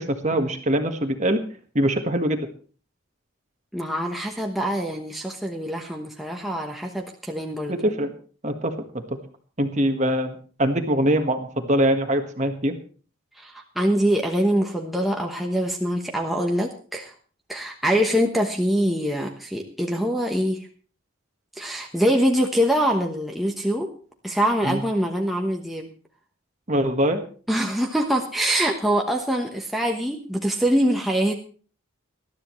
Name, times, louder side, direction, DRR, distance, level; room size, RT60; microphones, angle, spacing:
voice 1, 0.0-1.4 1.7-2.5 7.7-8.1 8.4-9.2 9.6-12.8 24.6-24.8 26.7-27.2, right 1 dB, 30° right, 6 dB, 1.5 m, -23 dB
voice 2, 3.7-7.8 13.4-17.1 17.5-20.7 21.5-23.9 24.2-25.9 27.5-31.3, equal, ahead, 0 dB, 1.1 m, -24 dB
20.0 x 12.5 x 3.2 m, 0.41 s
head